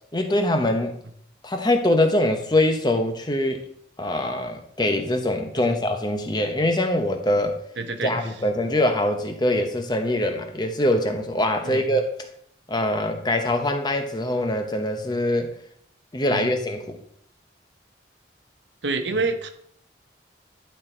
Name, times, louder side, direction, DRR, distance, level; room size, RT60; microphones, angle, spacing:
voice 1, 0.1-1.0 1.4-3.6 4.0-7.6 8.0-12.1 12.7-15.5 16.1-17.0, left 1 dB, 20° left, 5 dB, 0.8 m, -23 dB
voice 2, 7.8-8.2 11.6-11.8 16.3-16.5 18.8-19.5, right 3 dB, 70° right, 7 dB, 0.9 m, -27 dB
11.5 x 4.1 x 4.4 m, 0.67 s
head